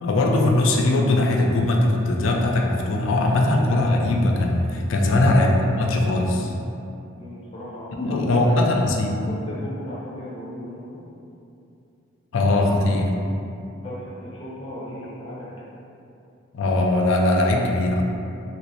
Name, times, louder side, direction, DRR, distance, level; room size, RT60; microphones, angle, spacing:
voice 1, 0.0-5.5 5.7-6.5 8.0-9.2 12.3-13.1 16.5-18.1, left 2 dB, 65° left, 1 dB, 0.4 m, -20 dB
voice 2, 5.1-5.5 7.2-8.6 9.3-11.0 13.8-15.5, left 1 dB, 25° left, -8 dB, 0.6 m, -36 dB
3.0 x 3.0 x 2.9 m, 2.7 s
head